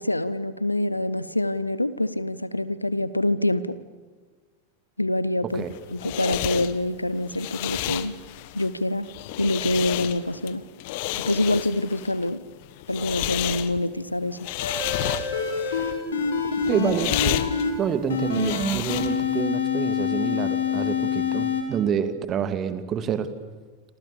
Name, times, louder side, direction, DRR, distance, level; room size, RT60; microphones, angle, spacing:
voice 1, 0.0-3.8 5.0-8.1 8.5-9.1 9.4-10.6 11.3-12.4 12.9-14.4, left 1 dB, 85° left, 17 dB, 1.1 m, -26 dB
sound 1, 5.5-19.4, left 16 dB, 50° left, 1.2 m, -32 dB
sound 2, 14.6-17.7 18.1-21.6, left 5 dB, 65° left, 5.7 m, -26 dB
voice 2, 16.5-17.4 17.8-23.3, right 8 dB, 30° right, 11 dB, 2.3 m, -28 dB
27.5 x 27.5 x 7.0 m, 1.4 s
figure-of-eight pair, 90°, 0 cm